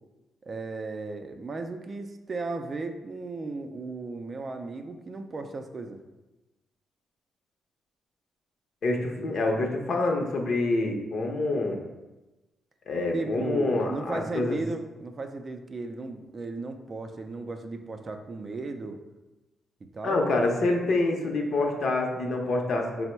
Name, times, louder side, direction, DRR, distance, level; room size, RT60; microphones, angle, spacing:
voice 1, 0.4-6.0 13.1-19.0 19.9-20.2, right 3 dB, 40° right, 6 dB, 0.4 m, -35 dB
voice 2, 8.8-11.8 12.9-14.6 20.0-23.1, left 2 dB, 60° left, 2 dB, 0.6 m, -26 dB
4.3 x 2.0 x 4.3 m, 1.1 s
cardioid pair, 90°, 0 cm